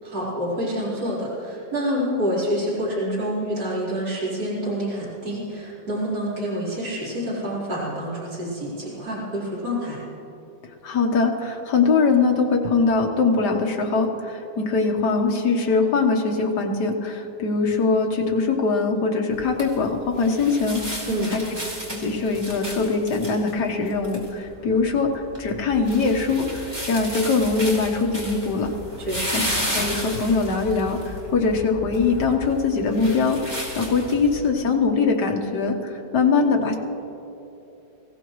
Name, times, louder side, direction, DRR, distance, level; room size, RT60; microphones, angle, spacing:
voice 1, 0.0-10.0 21.1-21.3 29.0-29.4, equal, 60° right, -9 dB, 4.8 m, -27 dB
voice 2, 10.8-21.4 22.0-25.1 25.4-28.7 29.3-36.8, left 4 dB, 65° left, 1 dB, 1.8 m, -22 dB
sound 1, 19.3-34.5, equal, 15° right, 2.9 m, -33 dB
23.5 x 15.5 x 3.1 m, 3.0 s
omnidirectional pair, 2.0 m